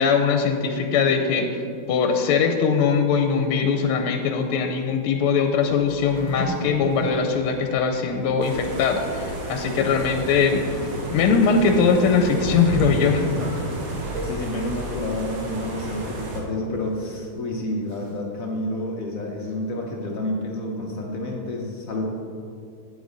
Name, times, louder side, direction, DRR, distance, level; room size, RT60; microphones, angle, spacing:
voice 1, 0.0-1.6 1.9-10.6 11.1-13.2, left 5 dB, 85° left, 5 dB, 1.5 m, -21 dB
sound 1, 5.4-14.8, right 1 dB, 40° right, 0.7 m, -35 dB
sound 2, 5.9-7.4 7.8-7.9 8.4-8.5 10.1-10.2 10.8-11.1 11.6-11.7 12.7-15.9 16.7-17.3 17.8-18.2, left 1 dB, 15° right, 1.6 m, -38 dB
sound 3, 8.4-16.4, right 2 dB, 75° right, 2.1 m, -33 dB
voice 2, 13.2-13.5 13.9-22.0, left 1 dB, 65° left, 0 dB, 0.8 m, -30 dB
8.6 x 8.0 x 4.0 m, 2.5 s
omnidirectional pair, 2.4 m